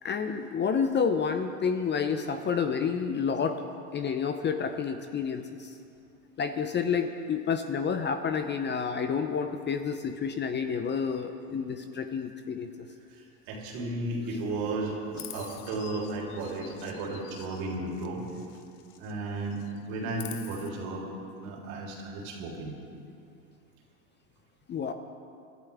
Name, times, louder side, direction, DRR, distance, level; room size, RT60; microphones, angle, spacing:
voice 1, 0.0-3.6 3.9-5.7 6.4-12.7 24.7-24.9, left 6 dB, 25° left, 8 dB, 0.7 m, -29 dB
voice 2, 13.1-18.3 19.0-19.6 19.9-21.1 21.4-22.8, right 2 dB, 55° right, -1 dB, 3.6 m, -34 dB
Chirp tweet, 15.1-19.2 19.5-20.7, left 11 dB, 75° left, 1.1 m, -48 dB
24.0 x 12.0 x 3.6 m, 2.5 s
hypercardioid pair, 100°, 45 cm